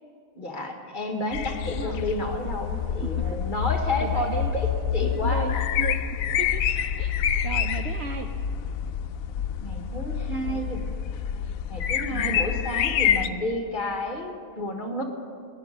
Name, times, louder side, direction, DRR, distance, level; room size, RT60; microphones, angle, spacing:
voice 1, 0.4-5.7 9.6-10.8 11.7-15.0, left 1 dB, 35° left, 4 dB, 1.4 m, -31 dB
sound 1, 1.3-13.3, left 8 dB, 80° left, 1.0 m, -27 dB
voice 2, 1.7-2.0 3.0-3.1 4.0-4.6 5.0-6.0 6.4-6.6 7.0-8.3 10.4-11.0 11.3-11.5 12.1-12.4, right 6 dB, 65° right, 7 dB, 0.7 m, -36 dB
18.5 x 10.5 x 5.4 m, 2.5 s
omnidirectional pair, 1.5 m